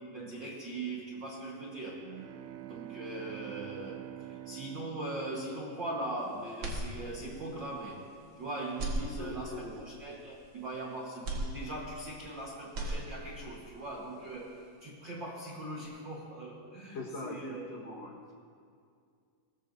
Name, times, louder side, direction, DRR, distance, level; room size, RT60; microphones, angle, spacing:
voice 1, 0.1-2.0 2.6-8.0 8.4-17.8, right 2 dB, 70° right, -3 dB, 1.0 m, -40 dB
sound 1, 1.9-6.0, right 16 dB, 90° right, 2.5 m, -46 dB
sound 2, 6.6-7.5 7.9-8.0 8.7-9.7 11.2-12.3 12.6-13.5, right 1 dB, 45° right, 1.7 m, -37 dB
voice 2, 9.2-9.8 16.9-18.2, left 2 dB, 55° left, -2 dB, 2.1 m, -42 dB
22.0 x 17.5 x 2.7 m, 2.3 s
omnidirectional pair, 4.3 m